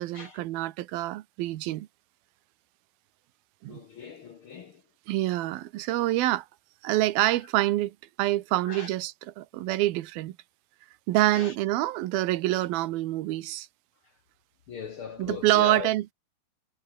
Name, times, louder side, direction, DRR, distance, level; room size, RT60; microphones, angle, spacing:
voice 1, 0.0-1.9 3.6-3.8 5.1-6.5 6.8-10.4 11.1-13.7 15.2-16.1, right 16 dB, 80° right, 2.8 m, -26 dB
voice 2, 3.7-4.7 8.7-8.9 11.3-11.5 14.7-15.9, left 6 dB, 65° left, 1.3 m, -38 dB
omnidirectional pair, 4.3 m